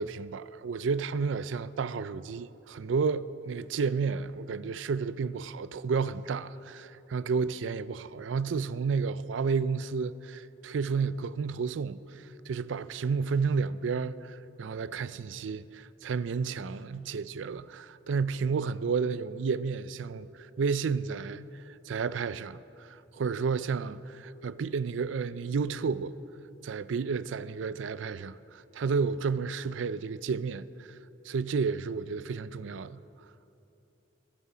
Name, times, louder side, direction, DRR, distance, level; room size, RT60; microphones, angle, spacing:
voice 1, 0.0-12.0 12.5-26.1 26.6-30.7 31.3-33.0, right 5 dB, 80° right, 0.4 m, -31 dB
21.5 x 8.3 x 5.0 m
head